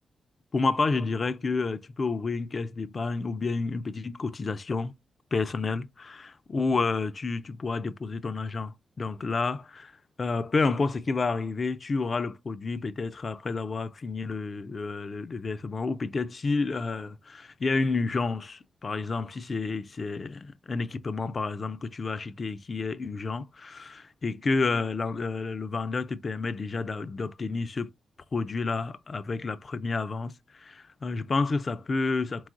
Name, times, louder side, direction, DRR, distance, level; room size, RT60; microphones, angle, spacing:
voice 1, 0.5-4.9 5.3-9.9 10.2-27.9 28.3-32.5, left 3 dB, 50° left, 0.5 m, -30 dB
4.7 x 3.6 x 2.5 m
supercardioid pair, 50°, 0 cm